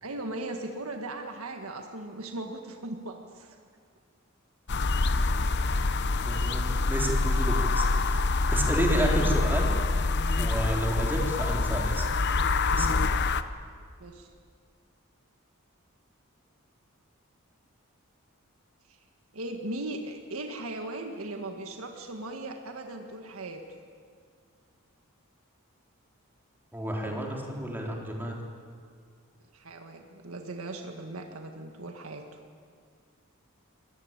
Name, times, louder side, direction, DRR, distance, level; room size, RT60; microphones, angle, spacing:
voice 1, 0.0-3.6 8.8-9.0 14.0-14.3 19.3-23.6 29.5-32.2, right 2 dB, 80° right, 4 dB, 1.7 m, -38 dB
sound 1, 4.7-13.4, left 3 dB, 55° left, 0.8 m, -26 dB
voice 2, 5.0-5.5 5.7-5.8 6.2-9.7 10.4-12.1 12.7-13.1 26.7-28.3, right 1 dB, 10° right, -1 dB, 3.7 m, -31 dB
25.0 x 18.5 x 8.9 m, 2.1 s
head